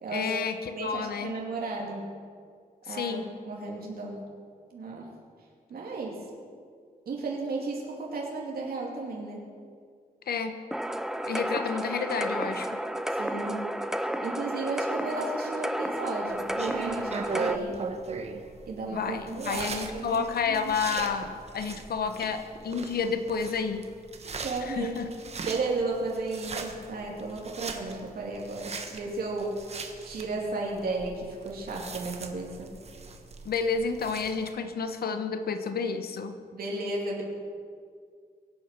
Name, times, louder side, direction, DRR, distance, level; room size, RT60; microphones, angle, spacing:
voice 1, 0.1-1.3 2.9-3.3 10.3-10.5 11.2-12.8 18.9-23.9 24.6-25.1 33.4-36.4, left 5 dB, 85° left, 8 dB, 1.0 m, -30 dB
voice 2, 0.7-2.1 2.9-3.2 3.5-4.2 4.7-5.1 5.7-6.2 7.1-9.5 13.2-13.7 14.2-17.8 18.7-19.7 19.9-20.7 24.4-25.0 25.4-29.6 30.0-32.7 36.5-37.2, right 3 dB, 75° right, -2 dB, 2.6 m, -34 dB
sound 1, 10.7-17.6, equal, 5° right, 0.4 m, -32 dB
sound 2, 16.3-34.5, right 4 dB, 45° right, 1.2 m, -39 dB
22.5 x 8.8 x 5.9 m, 2.1 s
wide cardioid pair, 175°, 16 cm